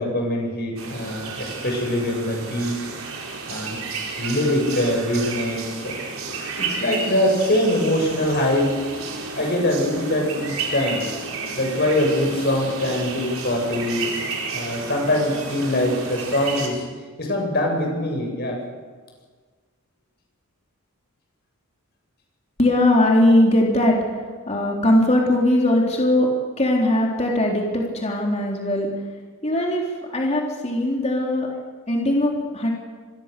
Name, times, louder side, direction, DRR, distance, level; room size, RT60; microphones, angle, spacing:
voice 1, 0.0-2.8 3.5-3.8 4.2-5.9 6.6-8.8 9.4-11.0 11.5-16.8 17.2-18.6, left 1 dB, 45° left, 1 dB, 7.6 m, -23 dB
sound 1, 0.8-16.7, right 4 dB, 70° right, 4.9 m, -32 dB
voice 2, 22.6-28.9 29.4-32.7, left 1 dB, 30° left, -1 dB, 3.7 m, -20 dB
27.0 x 22.0 x 6.9 m, 1.5 s
head